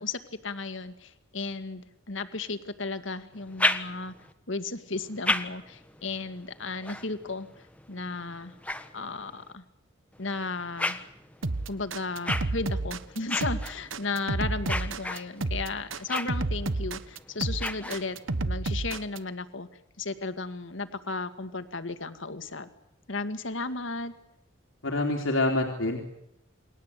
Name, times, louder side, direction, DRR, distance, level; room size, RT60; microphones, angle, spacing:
voice 1, 0.0-4.1 4.5-7.5 7.9-8.5 8.9-9.6 10.2-11.0 11.7-19.7 20.0-22.7 23.1-24.1, left 3 dB, 70° left, 10 dB, 1.9 m, -34 dB
sound 1, 3.3-4.3 4.9-9.5 10.1-18.4, left 2 dB, 5° left, 1.3 m, -35 dB
sound 2, 11.4-19.2, right 2 dB, 80° right, 1.2 m, -30 dB
voice 2, 24.8-26.0, left 2 dB, 85° left, 1 dB, 3.2 m, -26 dB
29.0 x 21.5 x 8.3 m, 0.84 s
head